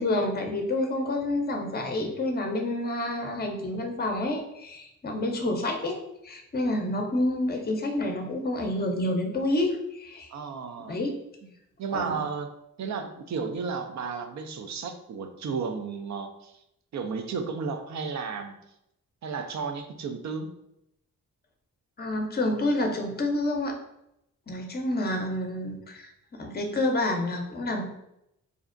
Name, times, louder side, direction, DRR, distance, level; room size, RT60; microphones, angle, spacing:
voice 1, 0.0-6.0 6.2-10.3 10.9-11.1 11.9-12.2 22.0-23.7 24.5-26.1 26.4-27.9, left 1 dB, 25° left, 3 dB, 0.6 m, -28 dB
voice 2, 10.3-11.0 11.8-12.5 12.8-16.5 16.9-18.6 19.2-20.5, right 5 dB, 55° right, 7 dB, 0.4 m, -33 dB
2.5 x 2.0 x 2.5 m, 0.81 s
supercardioid pair, 45°, 35 cm